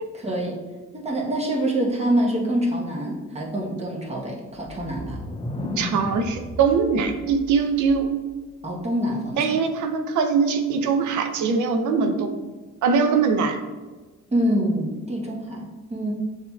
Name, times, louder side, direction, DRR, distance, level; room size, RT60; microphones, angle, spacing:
voice 1, 0.1-0.6 0.9-5.2 8.6-9.4 14.3-16.1, right 1 dB, 20° right, -2 dB, 1.0 m, -25 dB
sound 1, 4.6-8.3, left 1 dB, 20° left, 0.3 m, -35 dB
voice 2, 5.8-8.2 9.4-12.4 12.8-13.6, right 5 dB, 75° right, 6 dB, 0.6 m, -22 dB
6.7 x 2.8 x 2.3 m, 1.3 s
cardioid pair, 90°, 30 cm